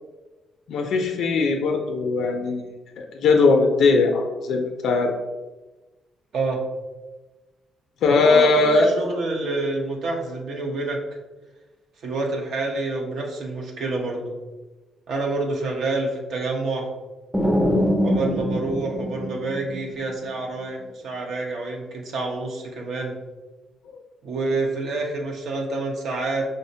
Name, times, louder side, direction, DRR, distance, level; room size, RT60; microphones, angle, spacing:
voice 1, 0.7-5.1 8.0-8.9 23.9-24.0, left 3 dB, 75° left, 3 dB, 0.4 m, -20 dB
voice 2, 6.3-6.6 8.1-11.0 12.0-14.3 15.1-16.9 18.0-23.2 24.2-26.5, right 2 dB, 65° right, 0 dB, 0.6 m, -27 dB
sound 1, 17.3-20.1, equal, 5° right, 0.4 m, -23 dB
5.0 x 2.0 x 2.6 m, 1.1 s
cardioid pair, 90°, 0 cm